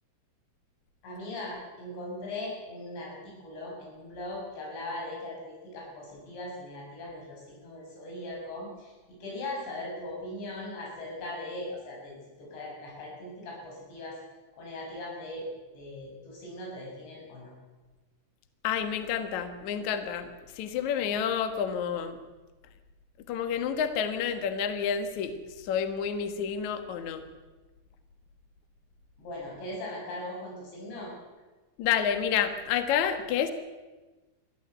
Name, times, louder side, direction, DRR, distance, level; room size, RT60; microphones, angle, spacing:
voice 1, 1.0-14.2 14.6-15.5 15.8-17.5 29.2-31.1, left 1 dB, 60° left, -3 dB, 8.8 m, -39 dB
voice 2, 18.6-22.2 23.3-27.2 31.8-33.5, left 8 dB, 85° left, 9 dB, 1.6 m, -29 dB
22.0 x 14.5 x 8.1 m, 1.2 s
omnidirectional pair, 5.7 m